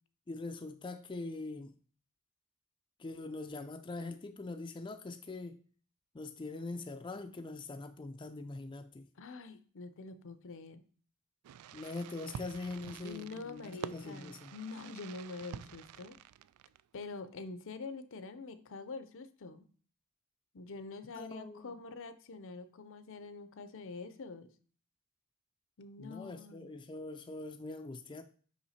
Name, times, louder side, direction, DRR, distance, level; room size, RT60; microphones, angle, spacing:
voice 1, 0.3-1.7 3.0-5.6 6.1-9.1 11.7-14.5 21.2-21.7 26.0-28.2, left 2 dB, 20° left, 7 dB, 0.4 m, -43 dB
voice 2, 9.2-10.8 13.0-16.2 16.9-19.7 20.5-24.5 25.8-26.7, left 3 dB, 60° left, 12 dB, 0.6 m, -45 dB
Fireworks, 11.4-17.0, right 9 dB, 85° right, 0.3 m, -48 dB
5.9 x 5.5 x 4.2 m, 0.43 s
head